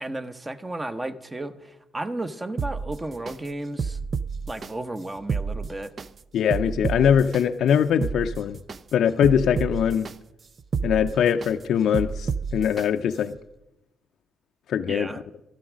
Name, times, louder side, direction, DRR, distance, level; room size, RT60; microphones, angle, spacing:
voice 1, 0.0-4.0 4.5-6.1 14.9-15.2, right 2 dB, 20° right, 10 dB, 0.9 m, -33 dB
sound 1, 2.6-3.3 3.8-4.7 5.2-6.1 6.5-7.4 7.9-8.8 9.2-10.1 10.6-11.5 11.9-12.8 13.3-13.4, right 5 dB, 40° right, 0.4 m, -30 dB
voice 2, 6.3-8.6 8.9-10.1 10.8-13.4 14.7-15.1, left 8 dB, 70° left, 6 dB, 0.5 m, -22 dB
13.0 x 11.5 x 6.2 m, 0.94 s
cardioid pair, 90°, 0 cm